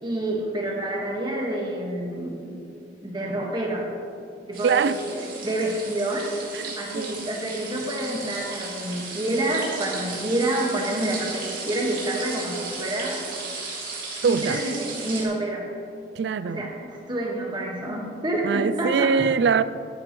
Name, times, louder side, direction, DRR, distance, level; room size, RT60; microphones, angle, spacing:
voice 1, 0.0-2.4 3.0-3.9 4.5-13.2 14.2-15.6 16.4-19.3, right 1 dB, 25° right, 1.6 m, -28 dB
sound 1, 4.5-15.2, right 4 dB, 50° right, 2.8 m, -35 dB
voice 2, 4.6-5.0 6.5-7.3 14.2-14.6 16.1-16.7 18.4-19.6, right 6 dB, 65° right, 0.3 m, -23 dB
14.0 x 10.5 x 3.1 m
head